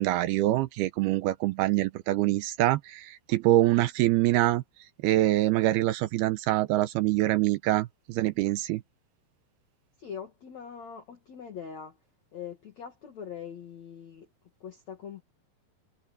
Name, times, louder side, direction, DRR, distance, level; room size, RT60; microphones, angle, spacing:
voice 1, 0.0-4.6 5.0-8.8, right 16 dB, 80° right, 2.4 m, -25 dB
voice 2, 10.0-12.0 12.3-14.3 14.6-15.2, left 7 dB, 50° left, 2.8 m, -42 dB
omnidirectional pair, 5.0 m